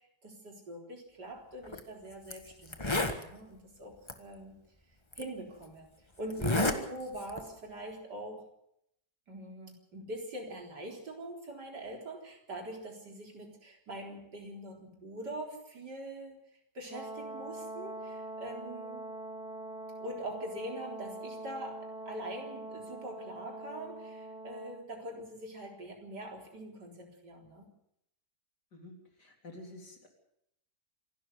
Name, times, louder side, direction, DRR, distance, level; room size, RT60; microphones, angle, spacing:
voice 1, 0.0-4.5 5.2-5.9 6.2-8.5 9.3-16.4 16.7-19.1 20.0-27.7, right 1 dB, 85° right, 1 dB, 4.5 m, -43 dB
Zipper (clothing), 1.6-1.8 2.3-2.4 2.7-3.2 4.1-4.2 5.1-5.2 6.3-6.8 7.1-7.5, left 2 dB, 15° left, 1.4 m, -30 dB
Brass instrument, 16.9-24.8, right 2 dB, 60° left, 3.1 m, -43 dB
voice 2, 29.2-30.1, left 2 dB, 80° left, 2 dB, 4.2 m, -49 dB
26.5 x 12.5 x 8.0 m, 0.77 s
omnidirectional pair, 1.8 m